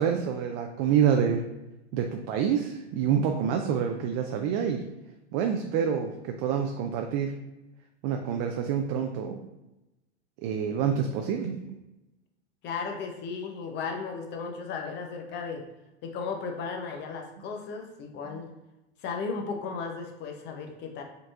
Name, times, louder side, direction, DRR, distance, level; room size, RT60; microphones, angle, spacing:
voice 1, 0.0-1.4 1.9-4.8 5.3-7.3 8.0-9.5 10.4-11.6 18.3-18.4, right 8 dB, 35° right, 4 dB, 0.4 m, -27 dB
voice 2, 12.6-15.6 16.0-18.5 19.0-21.0, left 5 dB, 30° left, 3 dB, 0.7 m, -35 dB
4.8 x 3.9 x 2.5 m, 0.97 s
hypercardioid pair, 120°, 34 cm